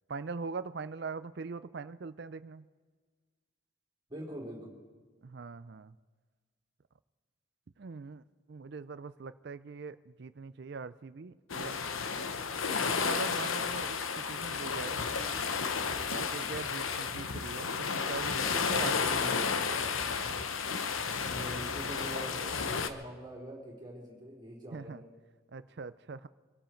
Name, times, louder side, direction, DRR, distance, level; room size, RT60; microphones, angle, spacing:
voice 1, 0.1-2.7 5.2-5.9 7.8-8.2 8.5-11.8 12.8-15.4 16.1-19.5 24.7-25.0 25.5-26.3, right 4 dB, 55° right, 14 dB, 0.4 m, -42 dB
voice 2, 4.1-4.7 21.3-25.1, right 1 dB, 20° right, -4 dB, 4.0 m, -44 dB
sound 1, 11.5-22.9, left 5 dB, 85° left, 0.9 m, -32 dB
24.5 x 12.0 x 4.5 m, 1.4 s
head